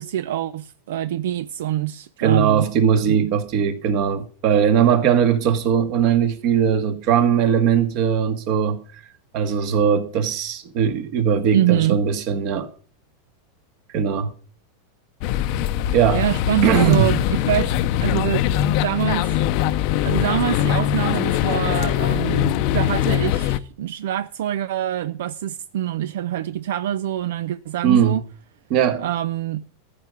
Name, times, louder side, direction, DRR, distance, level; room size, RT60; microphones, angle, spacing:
voice 1, 0.0-2.7 3.1-3.3 11.5-12.0 16.1-17.7 18.0-18.4 18.8-19.4 20.0-28.2 29.0-29.6, right 11 dB, 75° right, 0.5 m, -25 dB
voice 2, 2.2-8.8 9.3-12.7 13.9-14.3 15.9-16.2 16.6-17.1 27.8-28.2 28.7-29.0, right 8 dB, 45° right, 1.7 m, -19 dB
sound 1, 15.2-23.6, left 12 dB, 45° left, 0.7 m, -22 dB
14.0 x 5.1 x 8.3 m
supercardioid pair, 155°, 0 cm